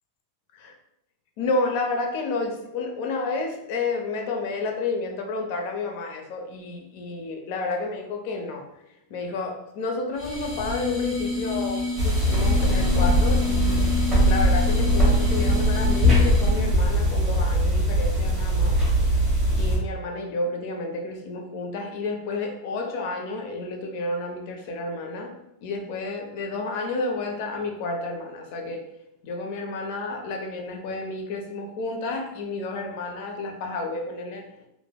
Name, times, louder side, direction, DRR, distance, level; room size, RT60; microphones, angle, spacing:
voice 1, 1.4-8.7 9.1-13.9 14.3-18.8 19.6-25.3 25.6-28.8 29.2-34.4, left 3 dB, 60° left, 3 dB, 0.6 m, -30 dB
sound 1, 10.2-16.7, left 3 dB, 20° left, 1.0 m, -30 dB
sound 2, 12.0-19.8, equal, 15° right, 1.1 m, -21 dB
3.3 x 2.1 x 2.2 m, 0.83 s
supercardioid pair, 140°, 0 cm